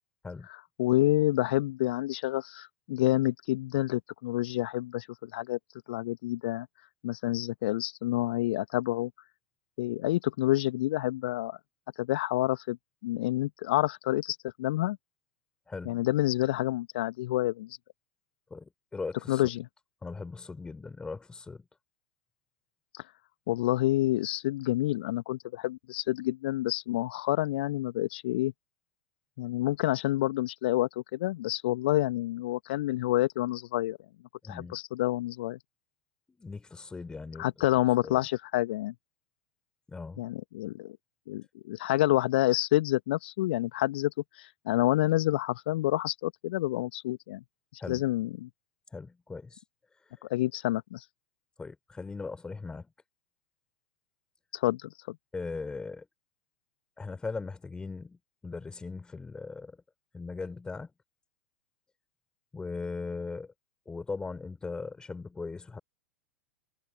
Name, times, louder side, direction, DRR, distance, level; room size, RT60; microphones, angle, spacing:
voice 1, 0.5-5.6 5.9-6.7 7.0-9.1 9.8-11.6 12.0-12.8 13.0-15.0 15.8-17.8 19.3-19.7 23.5-28.5 29.4-34.0 34.5-35.6 37.4-38.9 40.2-41.0 41.3-47.4 47.7-48.5 50.2-51.0 54.5-55.2, left 16 dB, 55° left, 2.0 m, -28 dB
voice 2, 15.7-16.0 18.5-19.4 20.0-21.6 34.4-34.8 36.3-38.2 39.9-40.2 47.8-48.0 48.9-49.6 51.6-52.9 55.3-56.1 57.0-59.8 60.1-60.9 62.5-63.5 63.9-65.8, left 4 dB, 10° left, 5.7 m, -39 dB
figure-of-eight pair, 90°, 7 cm